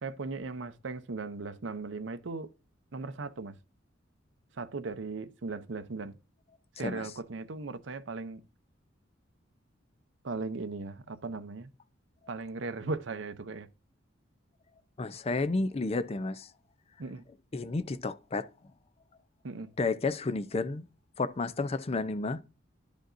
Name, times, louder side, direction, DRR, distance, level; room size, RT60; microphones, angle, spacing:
voice 1, 0.0-2.5 2.9-3.6 4.6-6.2 6.8-8.4 10.2-11.7 12.3-13.7 17.0-17.2 19.4-19.7, right 3 dB, 65° right, 0.7 m, -37 dB
voice 2, 15.0-16.5 17.5-18.5 19.8-20.9 21.2-22.4, left 3 dB, 30° left, 0.5 m, -31 dB
11.0 x 5.2 x 2.6 m
head